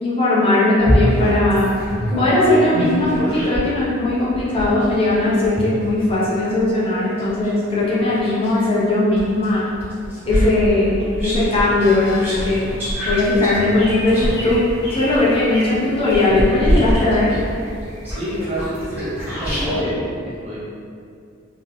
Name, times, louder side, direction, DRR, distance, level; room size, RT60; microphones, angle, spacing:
voice 1, 0.0-1.7 2.2-9.6 10.3-12.6 13.0-14.7 14.9-17.3, left 2 dB, 30° left, -8 dB, 0.5 m, -18 dB
sound 1, 0.8-3.8 4.3-8.7 9.2-19.8, equal, 10° right, 1.0 m, -24 dB
sound 2, 11.7-19.1, left 1 dB, 65° left, 0.9 m, -36 dB
voice 2, 18.1-19.1 19.4-20.6, equal, 30° right, -8 dB, 0.6 m, -27 dB
2.5 x 2.0 x 2.7 m, 2.4 s
head